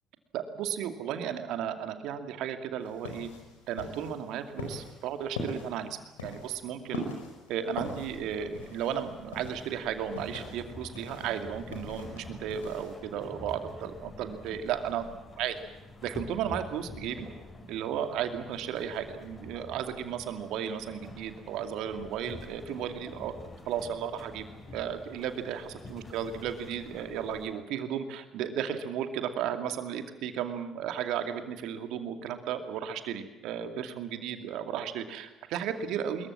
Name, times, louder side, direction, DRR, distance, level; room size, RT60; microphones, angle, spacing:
voice 1, 0.3-3.3 3.7-7.0 7.5-15.0 15.4-15.6 16.0-17.3 17.7-23.4 23.7-24.4 24.7-36.3, right 9 dB, 60° right, 7 dB, 2.4 m, -34 dB
sound 1, 2.8-12.9, left 2 dB, 80° left, 5.0 m, -43 dB
sound 2, 7.7-27.5, left 2 dB, 35° left, 7.3 m, -48 dB
25.5 x 22.0 x 7.5 m, 1.0 s
figure-of-eight pair, 50°, 0 cm